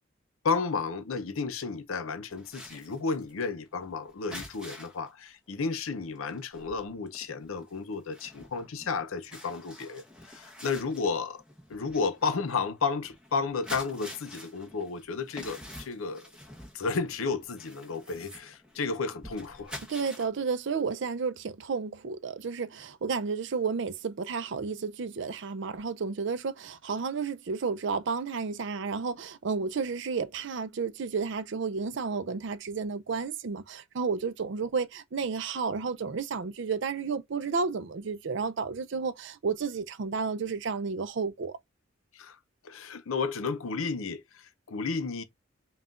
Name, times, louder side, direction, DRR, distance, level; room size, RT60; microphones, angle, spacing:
voice 1, 0.4-11.4 11.7-16.3 16.7-19.8 42.1-42.4 42.6-45.2, left 4 dB, 80° left, 0.6 m, -32 dB
sound 1, 2.3-5.1 5.5-5.7 6.0-20.3, left 1 dB, 5° right, 0.9 m, -47 dB
voice 2, 19.9-41.6, right 5 dB, 60° right, 0.5 m, -32 dB
5.6 x 2.3 x 2.4 m
head